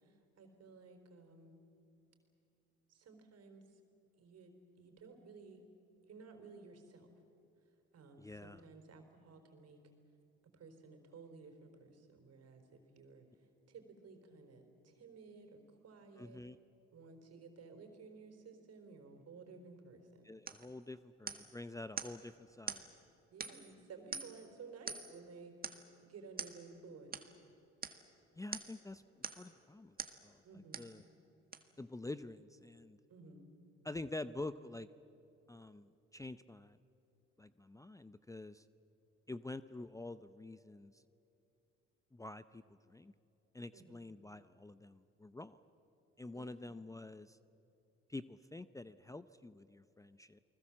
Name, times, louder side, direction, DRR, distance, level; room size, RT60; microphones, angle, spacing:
voice 1, 0.0-1.6 2.9-3.8 4.1-5.6 6.1-7.1 7.9-9.8 10.5-13.3 13.7-16.4 16.9-20.2 23.3-27.2 30.4-30.8 33.1-33.5 43.7-44.0 46.3-46.7, right 4 dB, 60° right, 5 dB, 4.4 m, -55 dB
voice 2, 8.2-8.6 16.2-16.6 20.2-22.8 28.4-30.0 30.2-30.4 30.8-31.0 31.8-33.0 33.8-34.9 35.5-36.8 37.4-38.6 39.3-41.0 42.1-43.1 43.5-45.6 46.2-47.4 48.1-50.4, left 2 dB, 10° left, 14 dB, 0.6 m, -47 dB
sound 1, 20.5-20.7 21.3-21.6 22.0-22.2 22.7-22.9 23.4-23.7 24.1-24.5 24.9-25.2 25.6-25.9 26.4-26.6 27.1-27.3 27.8-28.0 28.5-28.8 29.2-29.5 30.0-30.2 30.7-31.0 31.5-31.6, right 5 dB, 30° right, 1.7 m, -44 dB
30.0 x 20.0 x 7.5 m, 2.8 s
supercardioid pair, 70°, 29 cm